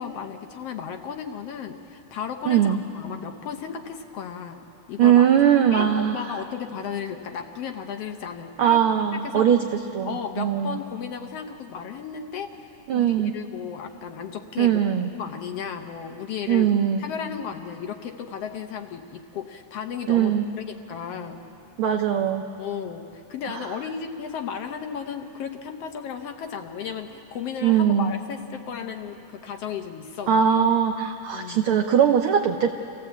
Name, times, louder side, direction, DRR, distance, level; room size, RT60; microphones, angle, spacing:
voice 1, 0.0-5.3 5.7-8.8 9.2-9.5 10.0-14.8 15.1-16.7 17.0-20.3 20.7-21.4 22.6-30.4 31.3-31.6, left 7 dB, 70° left, 6 dB, 1.6 m, -34 dB
voice 2, 2.4-2.8 5.0-6.4 8.6-10.8 12.9-13.3 14.6-15.1 16.5-17.0 20.1-20.4 21.8-22.4 23.5-23.8 27.6-28.1 30.3-32.7, right 9 dB, 85° right, 5 dB, 1.1 m, -20 dB
27.0 x 16.0 x 8.1 m, 2.9 s
omnidirectional pair, 3.4 m